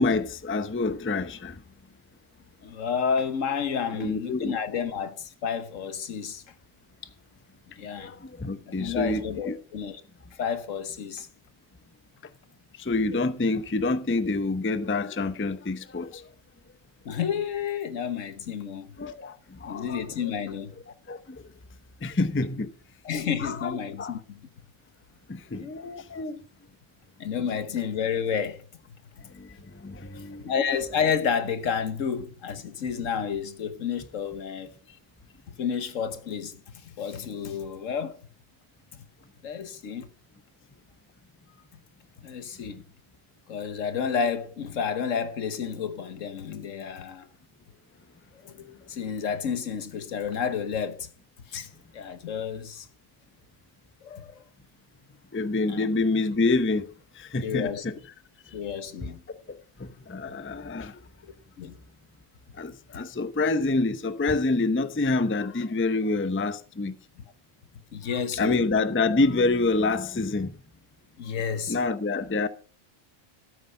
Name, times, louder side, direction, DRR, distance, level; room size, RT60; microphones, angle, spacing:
voice 1, 0.0-1.5 3.9-4.5 8.0-9.6 12.8-16.2 19.0-19.3 19.6-20.0 21.1-21.2 22.0-22.7 23.4-24.2 25.3-25.7 29.4-29.5 29.8-30.4 55.3-56.9 57.2-57.9 59.3-59.4 59.8-61.0 62.6-66.9 68.4-70.5 71.7-72.5, left 3 dB, 15° left, 0.5 m, -27 dB
voice 2, 2.6-6.4 7.8-8.1 8.6-10.0 10.3-11.3 17.0-19.0 19.7-20.7 23.0-24.4 25.5-26.4 27.2-28.6 30.1-34.7 35.5-38.2 38.9-39.0 39.4-40.1 42.2-42.8 43.5-47.3 48.4-51.1 51.5-52.9 54.0-54.4 55.7-55.9 57.4-57.9 58.5-59.2 61.2-61.8 67.2-67.3 67.9-68.7 71.2-71.8, left 7 dB, 80° left, 1.4 m, -31 dB
13.0 x 8.6 x 5.5 m
omnidirectional pair, 1.3 m